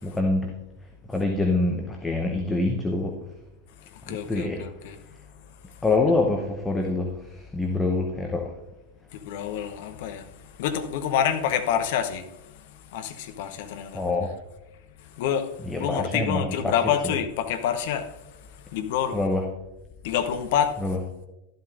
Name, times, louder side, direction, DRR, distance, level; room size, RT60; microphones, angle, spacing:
voice 1, 0.0-0.5 1.1-3.2 4.1-4.6 5.8-8.5 13.9-14.3 15.6-16.7 17.0-17.2 19.1-19.5 20.8-21.0, left 2 dB, 10° left, 0.9 m, -25 dB
voice 2, 4.1-5.0 9.2-10.2 10.6-12.2 12.9-14.0 15.2-15.5 15.8-18.1 18.7-19.2 20.0-20.8, left 9 dB, 50° left, 1.0 m, -27 dB
12.5 x 11.5 x 2.6 m
figure-of-eight pair, 90°, 0 cm